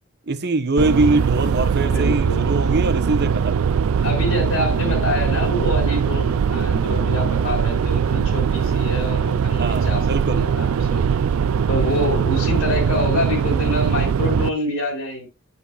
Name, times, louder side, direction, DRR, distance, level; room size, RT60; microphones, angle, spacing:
voice 1, 0.3-3.7 9.6-10.4 11.8-12.0, right 2 dB, 55° right, 1.0 m, -23 dB
sound 1, 0.8-14.5, right 6 dB, 90° right, 0.4 m, -21 dB
voice 2, 1.8-2.5 4.0-10.0 10.3-11.0 11.7-15.3, left 1 dB, 85° left, 3.9 m, -26 dB
9.9 x 8.5 x 2.3 m
head